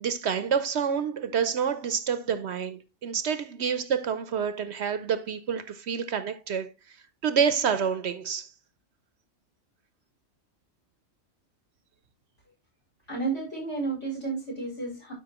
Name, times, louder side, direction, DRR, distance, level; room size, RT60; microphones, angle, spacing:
voice 1, 0.0-6.7 7.2-8.5, right 7 dB, 65° right, 0.9 m, -28 dB
voice 2, 13.1-15.1, right 4 dB, 65° left, 5.3 m, -32 dB
11.5 x 5.4 x 2.9 m
omnidirectional pair, 1.3 m